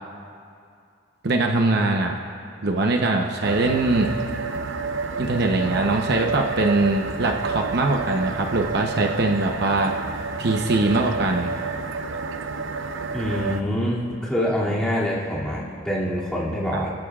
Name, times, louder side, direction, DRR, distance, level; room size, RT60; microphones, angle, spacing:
voice 1, 1.2-2.1 2.6-4.1 5.2-9.9 10.4-11.5 16.7-16.9, right 2 dB, 60° right, 2 dB, 0.9 m, -22 dB
sound 1, 3.4-13.6, right 4 dB, 90° right, 0.6 m, -29 dB
voice 2, 13.1-16.9, equal, 5° left, -7 dB, 2.6 m, -25 dB
28.0 x 13.5 x 2.4 m, 2.4 s
head